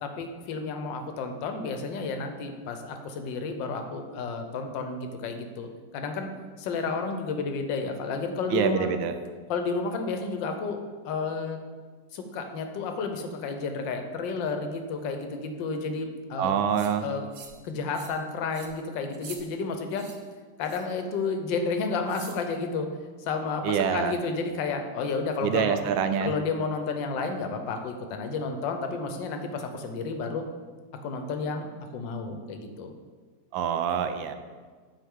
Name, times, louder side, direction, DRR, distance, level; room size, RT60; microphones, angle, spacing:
voice 1, 0.0-6.3 6.6-8.9 9.5-11.6 12.1-16.5 17.0-17.3 17.6-20.1 20.6-22.9 23.2-25.8 26.2-30.5 31.0-31.7 31.9-32.9, left 4 dB, 80° left, 6 dB, 1.4 m, -31 dB
voice 2, 8.5-9.1 16.4-17.1 23.6-24.1 25.4-26.3 33.5-34.3, right 7 dB, 85° right, 9 dB, 1.3 m, -26 dB
sound 1, 16.7-16.9 17.3-17.6 17.9-18.2 18.5-18.7 19.1-19.4 19.9-20.2 20.6-20.9 22.1-22.4, right 6 dB, 70° right, 0.6 m, -45 dB
8.9 x 4.7 x 3.7 m, 1.5 s
omnidirectional pair, 2.0 m